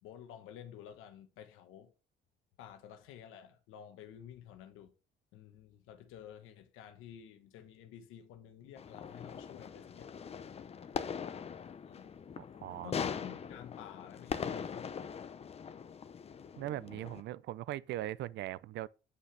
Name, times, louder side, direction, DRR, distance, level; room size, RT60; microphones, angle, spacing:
voice 1, 0.0-1.9 2.6-4.9 5.3-10.1 11.8-12.1 12.7-15.2, left 10 dB, 90° left, 1.1 m, -51 dB
sound 1, 8.8-17.2, left 7 dB, 30° left, 0.6 m, -41 dB
voice 2, 12.4-12.9 16.6-18.9, right 14 dB, 60° right, 0.4 m, -40 dB
7.9 x 5.8 x 3.3 m
cardioid pair, 130°, 21 cm